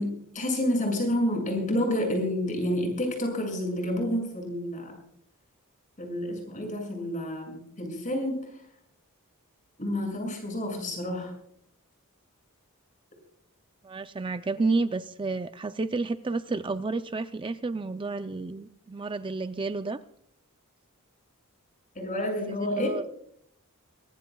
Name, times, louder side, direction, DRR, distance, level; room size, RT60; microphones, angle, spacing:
voice 1, 0.0-5.0 6.0-8.6 9.8-11.3 21.9-22.9, left 1 dB, 35° left, 2 dB, 6.6 m, -29 dB
voice 2, 13.8-20.0 22.5-23.0, right 3 dB, 20° right, 10 dB, 0.5 m, -30 dB
23.5 x 19.5 x 2.3 m, 0.67 s
head